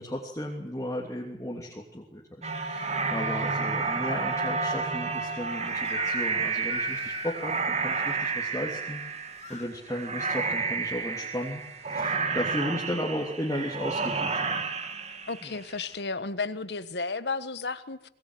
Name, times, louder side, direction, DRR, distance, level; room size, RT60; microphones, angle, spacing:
voice 1, 0.0-2.2 2.6-9.0 9.5-14.6 15.4-15.5, equal, 20° left, 3.1 m, -35 dB
sound 1, 2.4-15.8, right 4 dB, 40° right, 2.1 m, -30 dB
Crying sobbing / Screech, 5.8-6.4 6.7-8.2 9.0-9.7, left 5 dB, 45° left, 4.2 m, -39 dB
voice 2, 15.3-18.1, left 4 dB, 70° left, 1.4 m, -33 dB
23.0 x 21.5 x 9.3 m
head